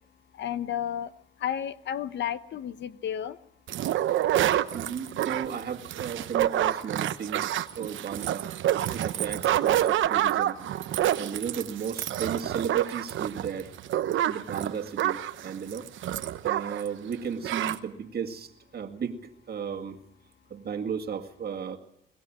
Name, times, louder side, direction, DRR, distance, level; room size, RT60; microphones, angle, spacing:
voice 1, 0.4-1.1 1.4-3.4, left 10 dB, 65° left, 14 dB, 0.9 m, -32 dB
sound 1, 3.7-16.9 17.1-17.2 17.4-17.8, right 12 dB, 75° right, 1.0 m, -27 dB
voice 2, 4.7-8.5 8.9-10.6 11.2-13.7 14.2-15.9 16.4-20.0 20.5-21.8, right 7 dB, 50° right, 4 dB, 2.1 m, -35 dB
22.5 x 18.5 x 7.5 m, 0.80 s
cardioid pair, 90°, 20 cm